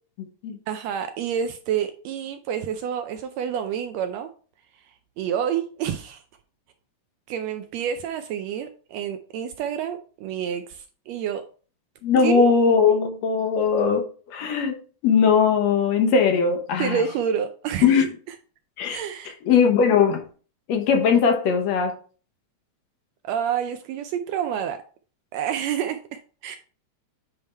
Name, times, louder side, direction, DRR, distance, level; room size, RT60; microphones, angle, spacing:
voice 1, 0.7-4.3 4.8-6.2 7.3-11.4 12.2-12.5 16.8-17.9 18.9-19.4 23.2-24.8 25.3-26.6, right 8 dB, 80° right, 1.6 m, -28 dB
voice 2, 12.0-14.0 14.3-14.8 15.0-17.0 17.8-18.1 18.8-19.0 19.5-20.2 20.7-22.0, left 6 dB, 70° left, 2.1 m, -19 dB
8.9 x 3.4 x 4.3 m
omnidirectional pair, 3.4 m